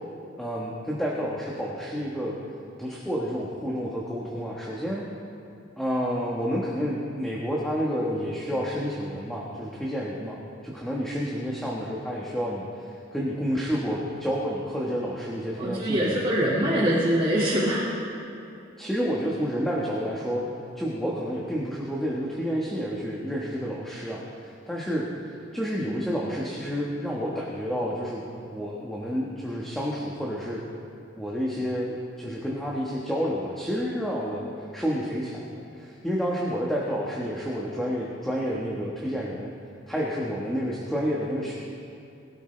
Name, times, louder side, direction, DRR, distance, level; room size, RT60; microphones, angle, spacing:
voice 1, 0.4-2.3 2.8-5.0 5.8-10.4 10.6-16.3 18.8-20.4 20.7-25.1 25.5-30.6 31.2-39.5 39.9-41.5, equal, ahead, -5 dB, 1.3 m, -30 dB
voice 2, 15.6-17.8, right 1 dB, 25° right, -8 dB, 2.1 m, -23 dB
21.0 x 13.0 x 3.3 m, 2.8 s
head